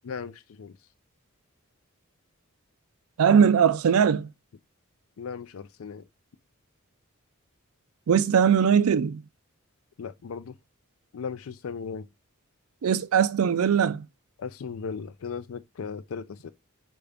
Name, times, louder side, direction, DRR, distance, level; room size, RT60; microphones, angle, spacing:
voice 1, 0.0-0.8 5.2-6.1 10.0-10.6 11.1-12.1 14.4-16.5, left 5 dB, 70° left, 0.4 m, -37 dB
voice 2, 3.2-4.3 8.1-9.2 12.8-14.1, right 7 dB, 85° right, 0.4 m, -20 dB
4.7 x 2.6 x 3.4 m
head